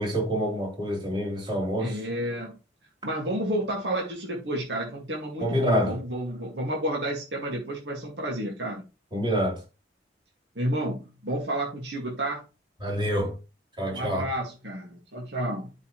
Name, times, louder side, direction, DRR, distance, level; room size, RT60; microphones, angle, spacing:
voice 1, 0.0-2.0 5.4-6.0 9.1-9.6 12.8-13.4 13.8-14.3, equal, 25° right, 3.8 m, -27 dB
voice 2, 1.8-2.6 3.0-8.8 10.6-12.4 13.9-15.7, right 1 dB, 80° right, 2.2 m, -31 dB
11.5 x 5.5 x 3.2 m
head